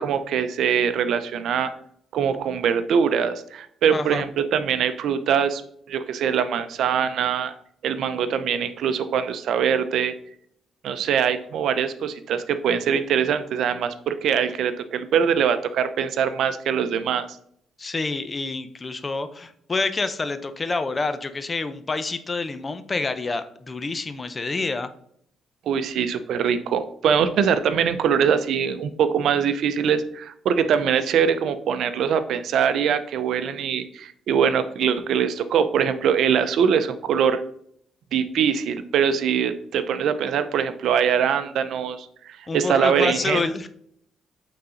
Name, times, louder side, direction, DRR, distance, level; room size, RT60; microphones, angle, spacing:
voice 1, 0.0-1.7 2.1-5.6 5.9-7.5 7.8-10.1 10.8-17.3 25.7-37.4 38.1-43.4, right 7 dB, 75° right, 11 dB, 0.6 m, -23 dB
voice 2, 3.9-4.2 17.8-24.9 42.5-43.7, left 3 dB, 30° left, 11 dB, 0.7 m, -27 dB
8.6 x 3.9 x 3.9 m, 0.67 s
cardioid pair, 90°, 0 cm